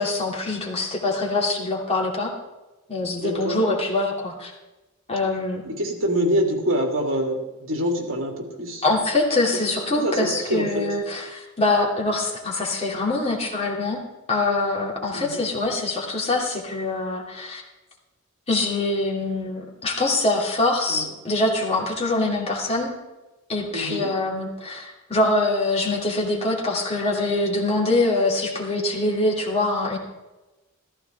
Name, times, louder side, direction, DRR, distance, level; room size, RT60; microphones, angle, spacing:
voice 1, 0.0-2.3 2.9-4.5 5.1-5.6 8.8-14.0 14.3-17.6 18.5-22.9 23.5-30.0, left 2 dB, 30° left, -2 dB, 2.7 m, -24 dB
voice 2, 3.2-3.6 5.6-8.8 9.9-10.8 15.1-15.4 20.9-21.1 23.7-24.1, equal, 70° right, 1 dB, 3.0 m, -25 dB
14.5 x 14.0 x 3.5 m, 1.1 s
head